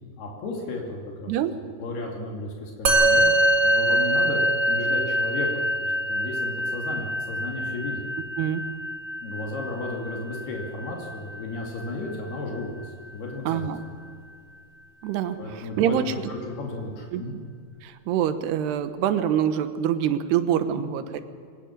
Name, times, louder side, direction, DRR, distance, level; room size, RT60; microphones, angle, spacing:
voice 1, 0.2-1.3 1.8-3.2 3.6-4.4 4.7-5.5 5.8-8.0 9.2-13.7 15.4-16.0 16.3-17.3 20.7-20.9, left 2 dB, 75° left, 0 dB, 4.5 m, -34 dB
Musical instrument, 2.8-12.4, right 1 dB, 40° right, 1.7 m, -25 dB
voice 2, 13.5-13.8 15.0-16.3 17.1-17.2 17.8-21.2, right 9 dB, 85° right, 10 dB, 3.2 m, -25 dB
24.5 x 19.0 x 7.3 m, 2.2 s
omnidirectional pair, 4.6 m